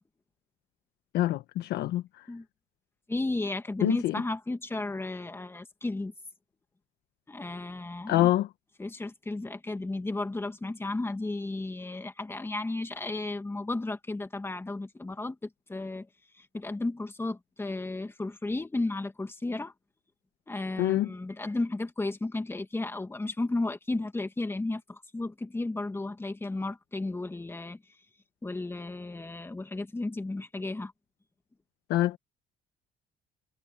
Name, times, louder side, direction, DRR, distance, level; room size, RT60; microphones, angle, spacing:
voice 1, 1.1-2.0 3.8-4.1 8.1-8.5 20.8-21.1 31.9-32.2, left 14 dB, 80° left, 1.3 m, -25 dB
voice 2, 3.1-6.1 7.3-8.3 8.8-16.1 16.4-19.7 20.5-27.8 28.4-30.9, left 2 dB, 15° left, 2.2 m, -33 dB
cardioid pair, 110°, 17 cm